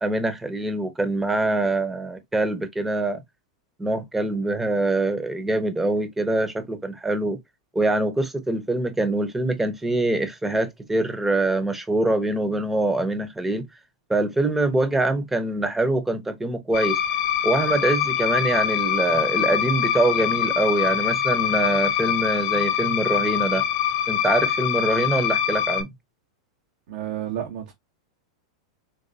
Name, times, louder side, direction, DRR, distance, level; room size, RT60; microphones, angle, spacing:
voice 1, 0.0-3.2 3.8-7.4 7.7-13.6 14.1-17.0 17.4-23.7 24.1-25.9, right 2 dB, 10° right, 0.9 m, -24 dB
sound 1, 16.7-25.8, left 10 dB, 55° left, 0.6 m, -24 dB
voice 2, 26.9-27.7, right 11 dB, 60° right, 1.0 m, -31 dB
4.0 x 3.2 x 2.7 m
hypercardioid pair, 95°, 3 cm